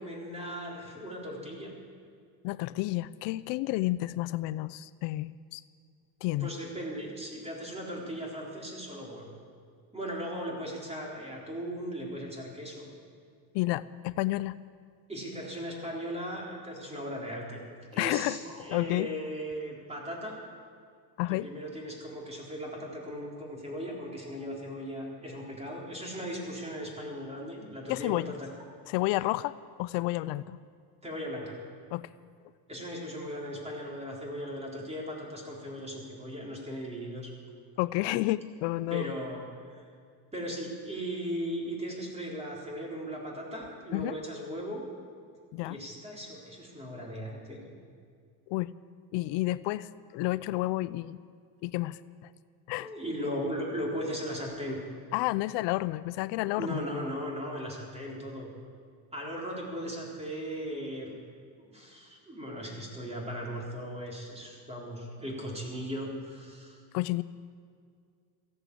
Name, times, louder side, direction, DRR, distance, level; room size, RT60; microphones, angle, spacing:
voice 1, 0.0-1.7 6.4-9.4 9.9-12.9 15.1-17.6 17.9-20.4 21.3-28.5 31.0-31.6 32.7-37.3 38.9-39.9 40.3-44.8 45.6-47.6 52.8-54.8 56.6-58.5 59.1-61.2 61.6-66.8, equal, 15° right, -2 dB, 4.0 m, -38 dB
voice 2, 2.4-5.6 6.2-6.5 13.5-14.6 18.0-18.4 18.7-19.1 21.2-21.5 27.9-28.3 28.9-29.5 29.8-30.6 31.9-32.1 37.8-39.1 43.9-44.2 45.5-45.8 48.5-48.7 49.1-51.2 51.6-52.0 52.7-52.9 55.1-56.8 66.9-67.2, left 18 dB, 85° left, 16 dB, 0.6 m, -30 dB
15.0 x 11.0 x 8.5 m, 2.2 s
cardioid pair, 125°, 42 cm